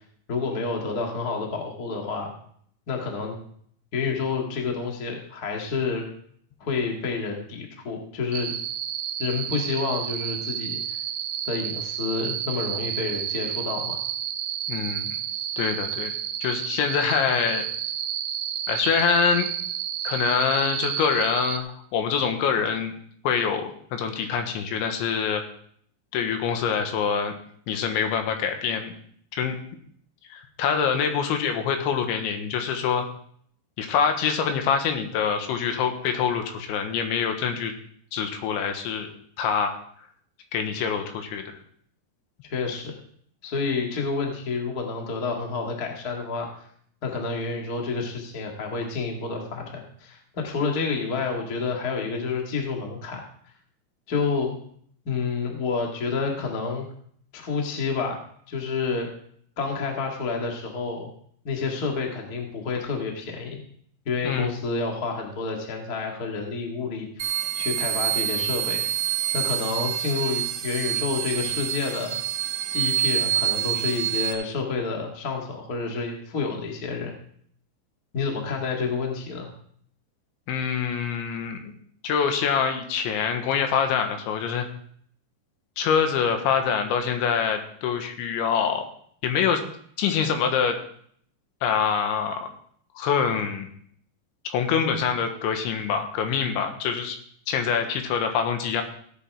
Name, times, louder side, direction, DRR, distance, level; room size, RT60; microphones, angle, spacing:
voice 1, 0.3-2.3 2.9-3.3 3.9-6.0 6.6-8.5 9.2-10.8 11.4-14.0 42.5-42.9 43.4-46.5 47.0-53.2 54.1-54.5 55.0-56.8 57.3-58.2 58.5-59.1 59.6-61.1 61.4-63.6 64.0-68.8 69.3-72.2 72.7-77.1 78.1-79.5, left 4 dB, 50° left, 1 dB, 1.1 m, -29 dB
sound 1, 8.3-21.6, right 10 dB, 80° right, 3.0 m, -31 dB
voice 2, 14.7-15.2 15.6-16.1 16.4-17.6 18.7-19.5 20.1-22.9 23.3-25.4 26.1-27.3 27.7-28.9 29.3-29.6 30.3-33.1 33.8-37.7 38.1-39.1 39.4-39.8 40.5-41.5 64.2-64.5 80.5-81.6 82.0-84.7 85.8-88.8 89.2-89.6 90.0-90.8 91.6-92.5 93.0-93.7 94.5-97.2 97.5-98.8, left 7 dB, 85° left, 5 dB, 3.6 m, -25 dB
sound 2, 67.2-74.3, right 12 dB, 60° right, 1.8 m, -27 dB
16.5 x 8.6 x 3.6 m, 0.62 s
omnidirectional pair, 5.3 m